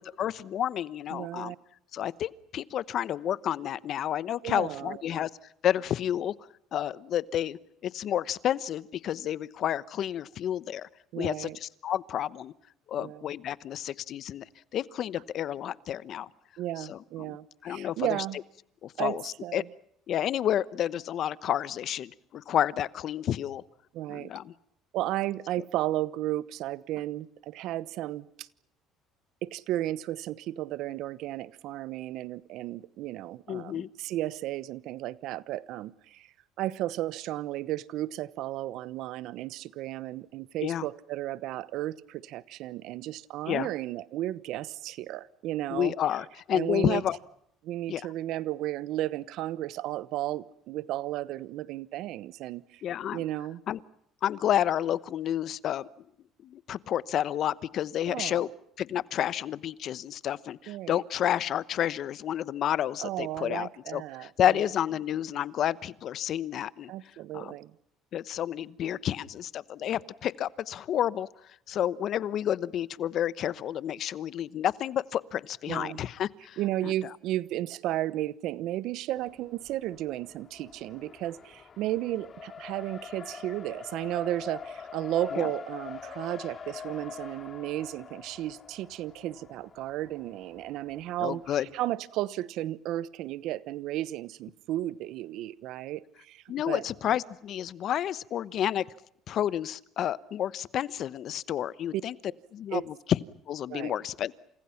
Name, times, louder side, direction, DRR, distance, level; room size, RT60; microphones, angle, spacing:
voice 1, 0.0-1.5 1.9-5.3 5.6-6.3 6.7-10.9 11.1-12.5 12.9-14.4 14.7-16.3 16.8-17.4 17.6-18.2 18.8-19.6 20.1-23.6 24.1-24.5 33.5-33.9 40.6-40.9 43.5-43.7 45.7-47.2 47.9-48.0 52.8-53.2 53.7-53.8 54.2-55.9 56.4-58.5 58.8-66.9 67.3-67.5 68.1-71.3 71.7-76.6 76.8-76.9 85.3-85.5 91.2-91.7 96.5-98.8 99.3-102.1 102.5-103.2 103.5-104.3, left 10 dB, 55° left, 18 dB, 1.0 m, -30 dB
voice 2, 1.1-1.6 4.4-5.2 11.1-11.6 13.0-13.3 16.6-18.4 19.0-19.7 23.9-24.3 24.9-28.5 29.4-45.9 46.5-47.0 47.6-52.8 53.1-53.6 58.1-58.5 60.7-61.0 63.0-64.7 66.9-67.7 75.7-76.0 76.6-96.8 101.9-102.0 102.7-102.9 103.7-104.0, right 14 dB, 70° right, 18 dB, 1.0 m, -34 dB
Race car auto racing, 79.2-91.8, left 6 dB, 35° left, 3.0 m, -44 dB
29.5 x 28.0 x 5.9 m, 0.71 s
supercardioid pair, 100°, 0 cm